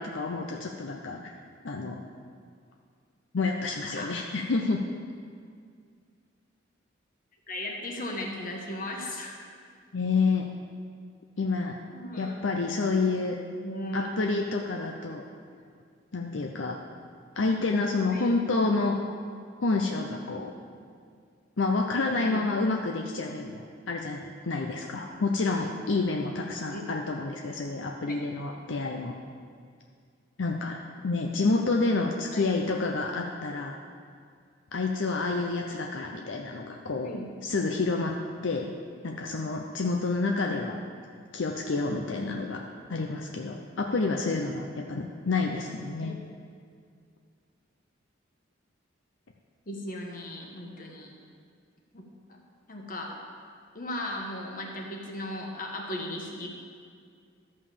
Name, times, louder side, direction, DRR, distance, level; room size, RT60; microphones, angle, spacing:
voice 1, 0.0-1.3 1.6-2.0 3.3-4.8 9.9-10.5 11.4-11.8 12.2-13.4 13.9-15.2 16.1-16.8 17.4-19.0 19.6-20.5 21.6-29.1 30.4-33.8 34.7-37.1 37.4-38.1 38.4-38.7 39.0-40.8 41.3-42.6 42.9-46.1, left 3 dB, 75° left, 1 dB, 0.7 m, -29 dB
voice 2, 7.5-9.4 11.9-12.4 13.6-14.1 18.1-18.4 22.2-22.5 26.7-26.8 28.1-28.2 32.3-32.6 37.0-37.3 40.4-40.6 42.2-42.3 46.0-46.1 49.7-51.1 51.9-52.0 52.3-52.4 52.7-53.2 53.7-56.5, left 1 dB, 45° left, 0 dB, 1.5 m, -36 dB
13.0 x 5.4 x 6.9 m, 2.1 s
head